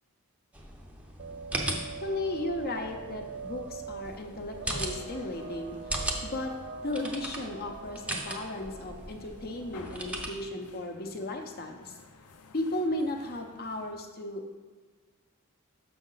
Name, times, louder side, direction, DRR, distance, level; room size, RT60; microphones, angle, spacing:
sound 1, 0.5-10.3, right 1 dB, 5° right, 0.6 m, -38 dB
sound 2, 1.2-10.4, right 5 dB, 50° right, 0.4 m, -44 dB
voice 1, 1.8-5.8 6.2-6.5 6.8-12.0 12.5-14.4, left 1 dB, 45° left, 4 dB, 0.7 m, -35 dB
sound 3, 4.0-13.9, left 3 dB, 85° left, 0.6 m, -53 dB
6.4 x 6.0 x 3.9 m, 1.4 s
head